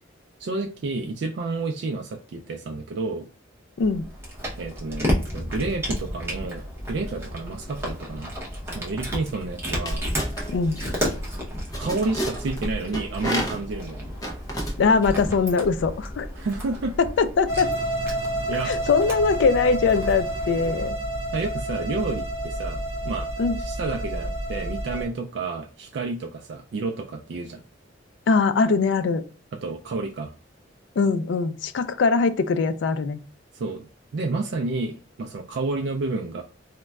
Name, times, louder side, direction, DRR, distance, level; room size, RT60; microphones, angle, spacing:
voice 1, 0.4-3.3 4.6-8.3 8.7-10.0 11.8-14.1 16.4-16.9 18.5-18.7 21.3-23.3 23.6-27.6 29.6-30.3 33.5-33.9 34.1-36.4, right 3 dB, 65° right, 2 dB, 0.3 m, -30 dB
Cat, 3.8-20.9, equal, 15° right, 0.8 m, -33 dB
sound 1, 9.9-15.3, equal, 20° left, 0.6 m, -31 dB
voice 2, 10.5-10.8 14.8-16.3 17.0-17.7 18.6-21.0 23.4-23.6 28.3-29.2 31.0-33.2, left 4 dB, 65° left, 11 dB, 0.3 m, -22 dB
sound 2, 17.5-25.0, right 1 dB, ahead, 1.5 m, -29 dB
3.9 x 2.2 x 2.3 m, 0.35 s
head